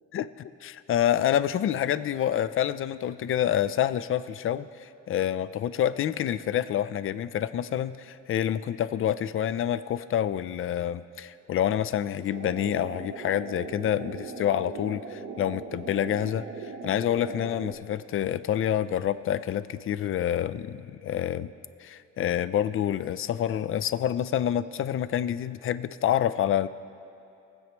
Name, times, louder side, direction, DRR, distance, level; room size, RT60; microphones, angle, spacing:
voice 1, 0.1-16.5 16.8-21.5 21.8-26.7, left 10 dB, 45° left, 15 dB, 0.4 m, -27 dB
sound 1, 12.3-17.7, right 4 dB, 40° right, 1.2 m, -39 dB
20.0 x 7.8 x 3.0 m, 2.6 s
cardioid pair, 90°, 30 cm